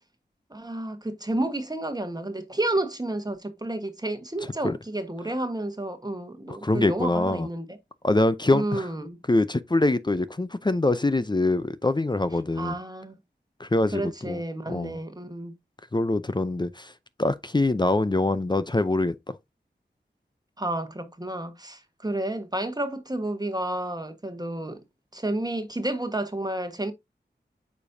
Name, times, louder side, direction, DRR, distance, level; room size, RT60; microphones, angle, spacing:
voice 1, 0.5-7.8 8.5-9.2 12.6-13.2 13.9-15.5 20.6-24.8 25.1-26.9, right 1 dB, 20° right, 1.3 m, -31 dB
voice 2, 6.5-7.5 8.0-8.9 9.3-12.7 13.6-14.4 14.7-15.0 15.9-16.9 17.2-19.1, left 2 dB, 25° left, 0.5 m, -24 dB
8.4 x 5.2 x 2.7 m
wide cardioid pair, 50°, 19 cm